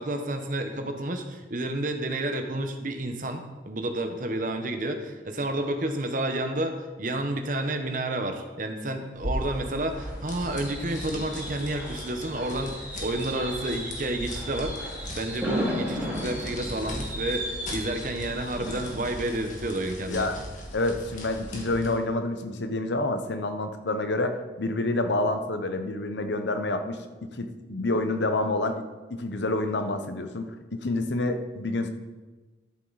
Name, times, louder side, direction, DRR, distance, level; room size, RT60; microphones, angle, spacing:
voice 1, 0.0-14.7 15.1-20.3, right 1 dB, 45° right, 6 dB, 1.0 m, -30 dB
sound 1, 9.1-22.0, equal, 45° left, 1.9 m, -38 dB
Fireworks, 9.3-21.0 21.4-21.7 21.9-22.0, equal, 10° right, 3.9 m, -36 dB
voice 2, 20.1-20.4 20.7-28.8 29.1-31.9, left 2 dB, 75° left, 7 dB, 0.9 m, -28 dB
13.0 x 7.5 x 4.1 m, 1.2 s
head